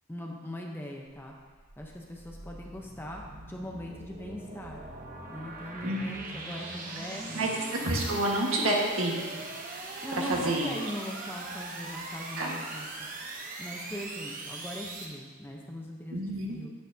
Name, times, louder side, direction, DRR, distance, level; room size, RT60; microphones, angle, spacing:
voice 1, 0.1-1.3 1.8-3.2 3.5-4.8 5.3-7.4 9.9-12.9 13.6-16.7, left 1 dB, 10° left, -1 dB, 0.8 m, -40 dB
sound 1, 1.6-15.1, right 2 dB, 40° right, 1.0 m, -41 dB
voice 2, 7.8-9.4 10.2-10.7 12.4-12.5 16.1-16.6, right 1 dB, 75° right, -2 dB, 1.6 m, -28 dB
9.8 x 9.1 x 2.8 m, 1.4 s
head